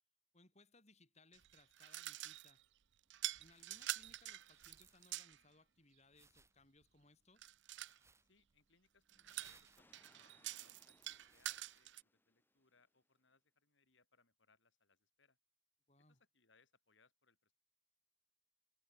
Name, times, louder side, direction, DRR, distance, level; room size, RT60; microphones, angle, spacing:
voice 1, 0.3-2.6 3.4-7.5 15.9-16.2, left 2 dB, 35° left, 6.4 m, -68 dB
sound 1, 1.3-2.6 3.1-5.4 7.4-8.0 9.1-12.0, right 14 dB, 60° right, 0.5 m, -46 dB
sound 2, 3.0-11.8, right 4 dB, 15° right, 2.5 m, -72 dB
voice 2, 8.2-15.4 16.1-17.5, left 4 dB, 65° left, 4.7 m, -75 dB
sound 3, 9.8-13.1, left 1 dB, 10° left, 6.7 m, -73 dB
head